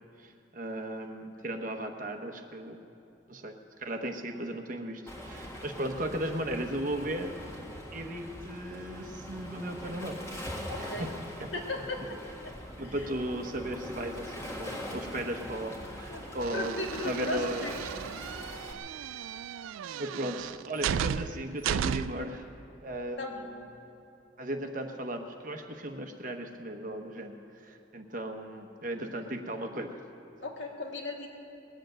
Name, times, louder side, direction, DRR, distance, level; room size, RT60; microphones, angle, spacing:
voice 1, 0.2-2.8 3.3-7.3 7.9-10.2 10.7-11.1 11.4-11.5 12.0-12.1 12.8-16.8 17.0-17.9 18.9-19.0 20.0-22.5 22.8-23.5 24.4-30.0, right 1 dB, 40° right, 4 dB, 1.0 m, -36 dB
Waves surf, 5.1-18.7, equal, 15° left, 1.6 m, -42 dB
voice 2, 10.7-11.1 11.5-12.2 12.4-12.5 12.8-13.1 16.1-16.2 16.5-17.8 23.2-23.5 30.4-31.3, left 1 dB, 65° left, 0 dB, 1.9 m, -36 dB
sound 1, 16.4-22.3, right 8 dB, 90° right, 0.3 m, -35 dB
20.0 x 7.9 x 9.0 m, 2.8 s
head